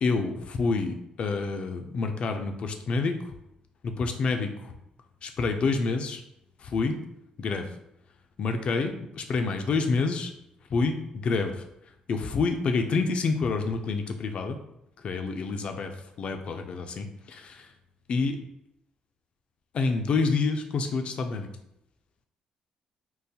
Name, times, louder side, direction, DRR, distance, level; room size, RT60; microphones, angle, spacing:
voice 1, 0.0-3.3 3.8-4.7 5.2-6.2 6.6-7.0 7.4-7.6 8.4-10.3 10.7-11.6 12.1-14.6 15.0-15.9 16.2-17.7 18.1-18.4 19.7-21.5, left 4 dB, 50° left, 6 dB, 0.4 m, -28 dB
3.8 x 2.4 x 2.7 m, 0.82 s
cardioid pair, 105°, 2 cm